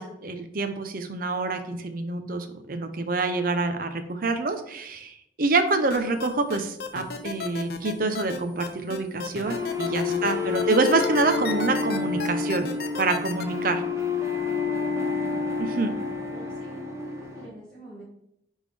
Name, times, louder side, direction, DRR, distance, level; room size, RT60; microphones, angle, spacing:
voice 1, 0.0-12.7 13.0-13.8 15.6-15.9, right 3 dB, 55° right, 8 dB, 0.7 m, -26 dB
sound 1, 5.9-13.4, left 6 dB, 60° left, 0.7 m, -34 dB
sound 2, 9.5-17.5, left 4 dB, 15° right, 0.8 m, -29 dB
voice 2, 14.6-15.1 16.3-18.0, equal, 5° left, -12 dB, 2.8 m, -45 dB
10.0 x 3.7 x 3.4 m, 0.75 s
head